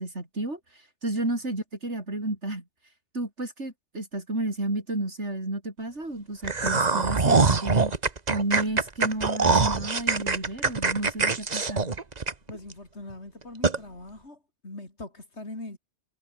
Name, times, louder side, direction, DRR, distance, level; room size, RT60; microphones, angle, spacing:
voice 1, 0.0-2.6 3.1-7.9 8.3-11.9, right 2 dB, 70° right, 6.1 m, -32 dB
sound 1, 6.4-12.7 13.1-13.2 13.6-13.8, right 4 dB, 35° right, 1.5 m, -23 dB
voice 2, 12.5-15.8, left 2 dB, 65° left, 5.4 m, -41 dB
omnidirectional pair, 1.2 m